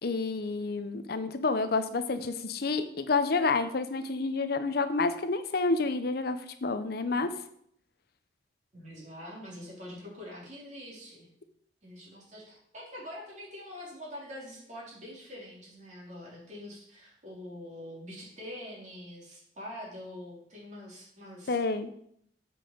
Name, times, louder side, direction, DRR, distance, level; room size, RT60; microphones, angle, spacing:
voice 1, 0.0-7.3 21.5-22.0, left 3 dB, 60° left, 10 dB, 0.7 m, -29 dB
voice 2, 8.7-11.3 11.8-21.6, left 1 dB, 45° right, -3 dB, 3.6 m, -44 dB
7.8 x 5.6 x 6.8 m, 0.68 s
head